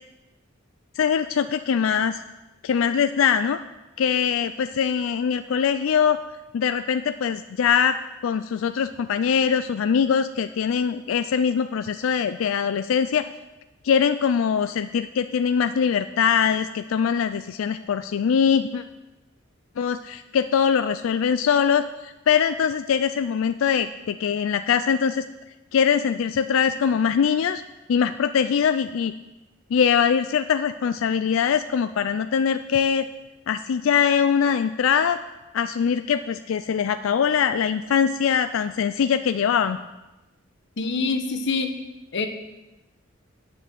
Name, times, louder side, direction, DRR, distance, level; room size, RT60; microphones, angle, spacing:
voice 1, 1.0-2.2 2.6-3.6 4.0-6.2 6.5-13.3 13.8-18.8 19.8-25.2 25.7-27.6 27.9-29.1 29.7-33.1 33.5-35.2 35.5-39.8, left 7 dB, 90° left, 11 dB, 0.4 m, -22 dB
voice 2, 40.8-41.8 42.1-42.3, left 4 dB, 65° left, 7 dB, 1.0 m, -25 dB
8.6 x 6.7 x 7.5 m, 1.0 s
head